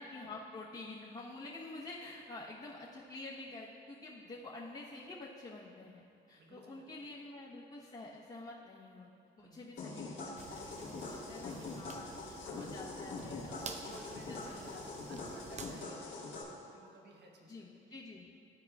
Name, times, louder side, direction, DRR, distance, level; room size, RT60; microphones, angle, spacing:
voice 1, 0.0-9.1 9.4-15.2 17.4-18.3, left 2 dB, 35° left, -7 dB, 1.0 m, -49 dB
voice 2, 6.3-6.9 9.4-9.7 13.5-14.8 15.1-16.4 16.7-17.7, right 3 dB, 60° right, 0 dB, 1.2 m, -55 dB
sound 1, 9.8-16.4, left 3 dB, 70° left, 1.4 m, -44 dB
sound 2, 10.4-15.8, right 4 dB, 35° right, 0.5 m, -51 dB
13.0 x 4.8 x 2.4 m, 2.5 s
cardioid pair, 90°, 20 cm